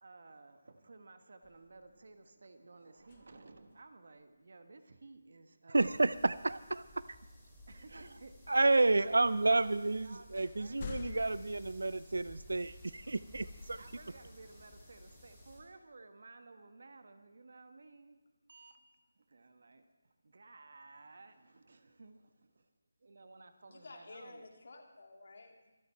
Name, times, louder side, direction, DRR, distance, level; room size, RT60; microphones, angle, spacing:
voice 1, 0.0-6.1 7.7-8.3 8.6-9.2 9.4-11.1 13.8-18.2 18.5-18.8 19.1-22.7 23.0-24.5, right 3 dB, 60° right, 8 dB, 1.3 m, -56 dB
sound 1, 1.4-2.2 3.0-3.9 7.5-7.6 9.6-9.7 10.3-11.5, left 6 dB, 30° left, 0.6 m, -48 dB
voice 2, 5.7-7.0 8.5-13.8, right 2 dB, 75° right, 16 dB, 0.4 m, -30 dB
sound 2, 5.8-15.6, left 1 dB, 5° left, 4.5 m, -55 dB
voice 3, 23.7-25.7, left 2 dB, 55° left, 2 dB, 2.6 m, -52 dB
25.0 x 8.5 x 4.4 m, 1.1 s
figure-of-eight pair, 165°, 0 cm